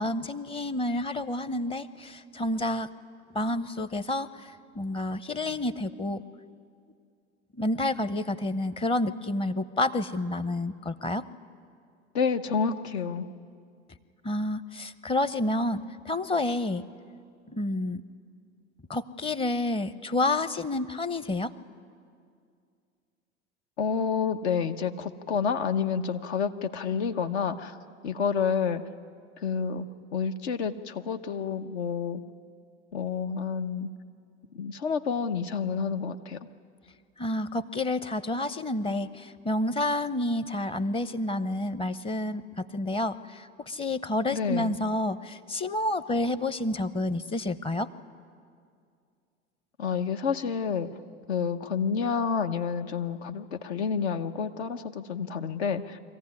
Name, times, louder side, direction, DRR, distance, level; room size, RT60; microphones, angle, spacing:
voice 1, 0.0-2.9 3.3-4.3 4.8-6.2 7.6-11.2 14.2-16.8 17.5-18.0 18.9-21.5 37.2-47.9, left 2 dB, 15° left, 14 dB, 0.7 m, -29 dB
voice 2, 12.1-13.3 23.8-27.8 28.0-28.8 29.4-29.8 30.1-32.2 32.9-33.9 34.5-36.4 44.3-44.8 49.8-50.9 51.3-56.0, left 6 dB, 70° left, 7 dB, 1.1 m, -29 dB
23.0 x 15.0 x 9.6 m, 2.3 s
hypercardioid pair, 80°, 34 cm